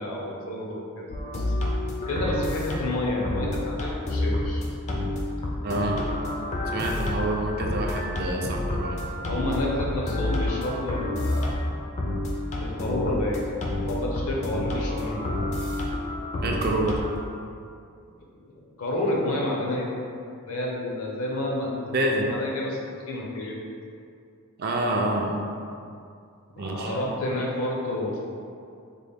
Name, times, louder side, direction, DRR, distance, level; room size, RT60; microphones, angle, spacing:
voice 1, 0.0-1.4 2.1-4.6 9.2-11.5 12.5-13.4 13.9-15.3 18.8-19.9 20.5-22.8 23.1-23.6 26.6-28.2, left 1 dB, 75° left, -2 dB, 0.7 m, -29 dB
sound 1, 1.1-17.1, left 1 dB, 30° left, 0.4 m, -29 dB
voice 2, 5.6-6.0 6.7-9.0 16.4-17.0 21.9-22.3 24.6-25.4 26.6-26.9, right 1 dB, 45° right, 0 dB, 0.4 m, -27 dB
3.8 x 2.1 x 3.5 m, 2.4 s
head